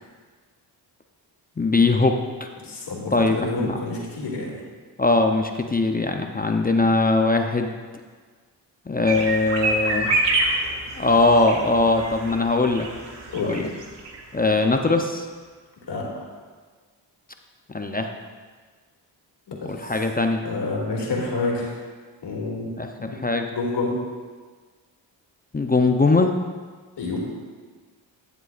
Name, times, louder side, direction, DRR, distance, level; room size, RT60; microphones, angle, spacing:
voice 1, 1.6-2.2 3.1-3.8 5.0-7.7 8.9-10.2 11.0-12.9 13.4-13.7 14.3-15.3 17.7-18.1 19.6-20.4 22.8-23.5 25.5-26.3, left 3 dB, 20° left, 4 dB, 0.6 m, -21 dB
voice 2, 2.6-4.6 13.3-13.6 15.9-16.1 19.6-19.9 20.4-21.7 22.2-22.7 23.5-24.0 27.0-27.2, left 3 dB, 65° left, -3 dB, 2.5 m, -28 dB
sound 1, 9.0-14.2 14.5-14.6 14.8-14.9, right 2 dB, 70° right, 1.3 m, -27 dB
11.0 x 7.6 x 2.5 m, 1.5 s
cardioid pair, 55°, 45 cm